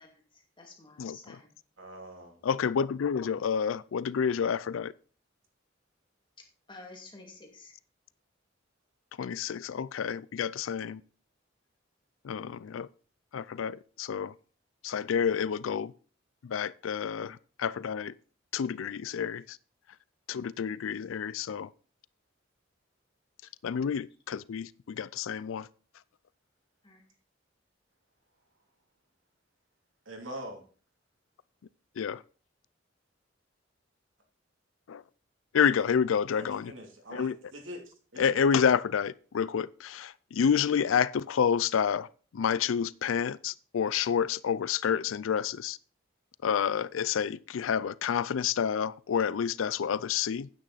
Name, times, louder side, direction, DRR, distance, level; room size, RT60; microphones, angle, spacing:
voice 1, 0.0-1.5 6.7-7.7 26.8-27.0, left 3 dB, 25° left, 2.3 m, -51 dB
voice 2, 1.0-1.4 2.4-4.9 9.2-11.0 12.2-12.9 13.3-14.3 14.8-15.9 16.4-18.1 18.5-19.6 20.3-21.7 23.6-25.7 32.0-32.2 34.9-35.0 35.5-36.7 37.1-37.3 38.2-42.1 42.3-45.8 46.4-50.5, left 7 dB, 90° left, 0.4 m, -29 dB
voice 3, 1.8-2.4 30.0-30.6 35.7-36.0 36.3-38.6, equal, 85° right, 2.8 m, -44 dB
9.4 x 8.9 x 4.0 m
head